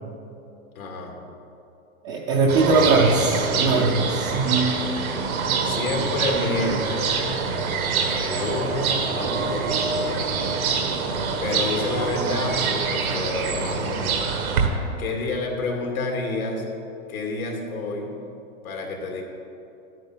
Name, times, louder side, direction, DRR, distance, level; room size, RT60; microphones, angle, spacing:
voice 1, 0.7-1.2 3.5-4.5 5.6-7.2 8.1-10.6 11.4-14.0 15.0-16.7 17.1-18.2 18.6-19.2, left 2 dB, 90° left, 1 dB, 2.3 m, -29 dB
voice 2, 2.0-4.8, right 3 dB, 20° right, -2 dB, 0.4 m, -20 dB
sound 1, 2.5-14.7, right 5 dB, 85° right, 1.5 m, -25 dB
12.0 x 9.2 x 3.7 m, 2.8 s
hypercardioid pair, 150°, 42 cm